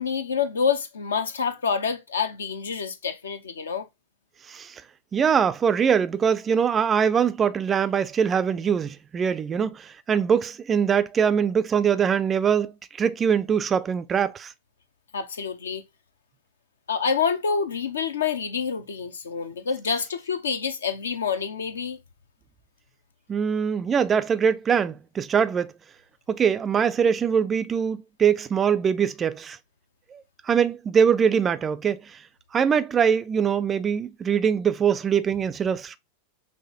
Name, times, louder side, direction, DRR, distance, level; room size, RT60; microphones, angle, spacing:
voice 1, 0.0-3.9 15.1-15.8 16.9-22.0, left 6 dB, 70° left, 0.7 m, -27 dB
voice 2, 4.5-4.8 5.1-12.7 13.0-14.5 23.3-25.7 26.3-29.6 30.1-32.2 32.5-36.0, right 7 dB, 20° right, 0.4 m, -23 dB
5.5 x 3.1 x 2.7 m
figure-of-eight pair, 90°, 0 cm